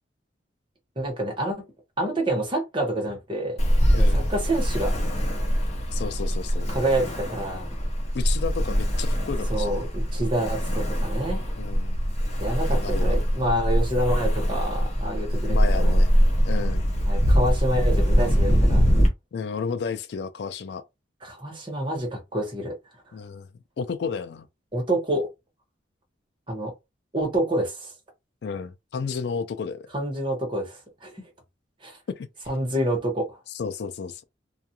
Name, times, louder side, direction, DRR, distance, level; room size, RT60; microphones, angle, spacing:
voice 1, 1.0-1.6 2.0-3.6 3.9-4.9 6.7-7.7 9.5-11.4 12.4-15.9 17.1-18.9 21.2-22.8 24.7-25.3 26.5-26.7 27.1-27.9 29.9-31.1 31.8-32.0 32.5-33.4, right 1 dB, 25° right, 1.1 m, -27 dB
Ocean, 3.6-19.1, equal, 35° left, 0.8 m, -23 dB
voice 2, 3.9-4.3 5.9-6.7 8.1-9.9 11.6-12.0 12.6-13.2 15.5-16.1 16.4-16.9 19.3-20.8 23.1-23.5 23.8-24.5 28.4-29.9 32.1-32.3 33.5-34.2, left 5 dB, 60° left, 0.3 m, -32 dB
2.4 x 2.3 x 2.8 m
head